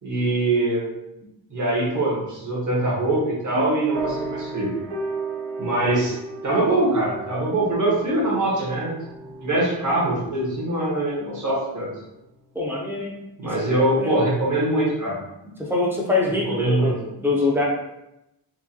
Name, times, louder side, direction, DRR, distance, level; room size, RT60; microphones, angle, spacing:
voice 1, 0.0-0.9 1.5-4.7 5.6-6.1 6.4-8.9 9.4-11.9 13.4-15.2 16.4-16.9, right 2 dB, 40° right, -6 dB, 1.3 m, -23 dB
sound 1, 3.5-11.6, right 3 dB, 70° right, 0.7 m, -35 dB
voice 2, 12.5-13.2 13.4-13.5 14.0-14.2 15.4-17.7, left 3 dB, 5° right, -2 dB, 0.6 m, -24 dB
4.6 x 2.3 x 2.8 m, 0.89 s
wide cardioid pair, 160°, 44 cm